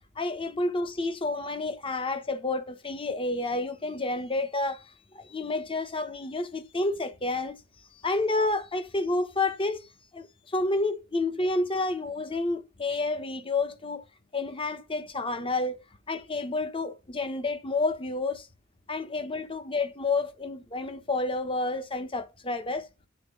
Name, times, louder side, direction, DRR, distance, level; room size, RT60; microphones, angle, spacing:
voice 1, 0.2-7.6 8.0-9.9 10.1-14.0 14.3-15.8 16.1-18.5 18.9-22.9, left 2 dB, 25° left, 1.1 m, -30 dB
9.5 x 3.8 x 5.3 m
head